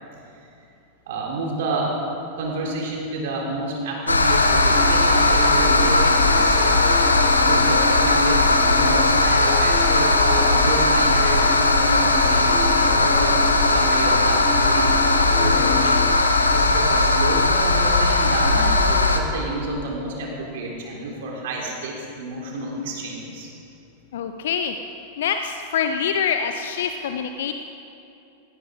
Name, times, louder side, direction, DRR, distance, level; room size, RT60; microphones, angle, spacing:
voice 1, 1.1-2.0 2.4-6.8 7.4-16.0 16.5-23.5, right 2 dB, 55° right, -2 dB, 3.6 m, -30 dB
sound 1, 4.1-19.2, left 2 dB, 80° left, 1.1 m, -18 dB
sound 2, 4.7-16.6, left 4 dB, 15° left, 3.4 m, -31 dB
voice 2, 24.1-24.7 25.2-27.5, left 7 dB, 60° left, 7 dB, 0.7 m, -25 dB
18.0 x 18.0 x 3.8 m, 2.6 s
figure-of-eight pair, 90°, 0 cm